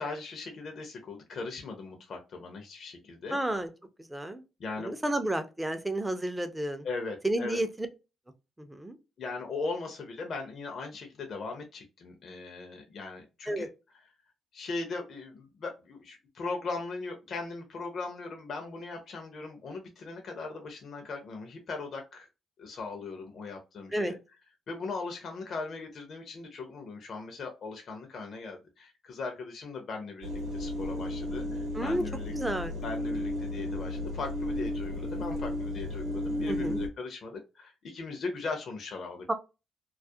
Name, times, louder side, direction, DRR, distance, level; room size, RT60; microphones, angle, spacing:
voice 1, 0.0-3.4 4.6-4.9 6.8-7.6 9.2-13.7 14.5-22.3 22.6-24.2 24.7-32.3 32.8-39.3, left 3 dB, 50° left, 0.6 m, -39 dB
voice 2, 3.3-3.7 4.1-4.4 4.8-6.9 7.2-7.9 8.6-9.0 13.5-13.7 23.9-24.1 31.7-32.0 32.3-32.7 36.5-36.8 39.3-39.4, right 1 dB, 10° right, 0.4 m, -31 dB
sound 1, 30.2-36.9, left 1 dB, 75° right, 0.7 m, -33 dB
2.3 x 2.0 x 2.6 m
cardioid pair, 110°, 0 cm